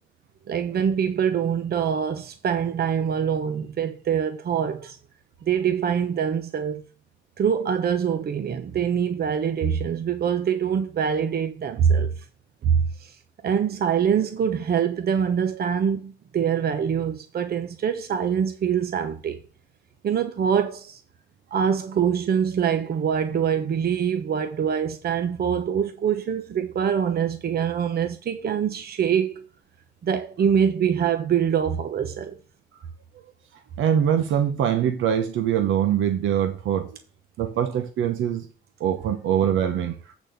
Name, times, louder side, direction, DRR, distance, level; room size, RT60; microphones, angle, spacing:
voice 1, 0.5-5.0 5.4-6.8 7.4-12.1 12.6-13.2 13.4-19.4 20.0-21.0 21.5-29.4 30.0-32.3, right 8 dB, 50° right, 1.0 m, -24 dB
voice 2, 33.8-37.0 37.4-38.5 38.8-40.0, right 9 dB, 80° right, 1.1 m, -23 dB
8.3 x 4.2 x 6.8 m
cardioid pair, 90°, 20 cm